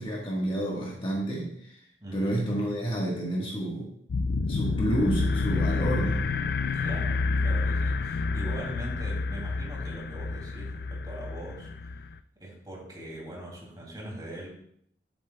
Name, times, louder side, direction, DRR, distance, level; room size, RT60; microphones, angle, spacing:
voice 1, 0.0-1.8 2.1-3.9 4.5-6.2, right 1 dB, 30° left, -3 dB, 1.5 m, -29 dB
voice 2, 2.0-2.5 6.7-11.7 12.4-14.5, right 1 dB, 25° right, -3 dB, 2.7 m, -41 dB
sound 1, 4.1-12.2, left 3 dB, 60° left, 0.3 m, -29 dB
11.0 x 7.2 x 2.3 m, 0.69 s
head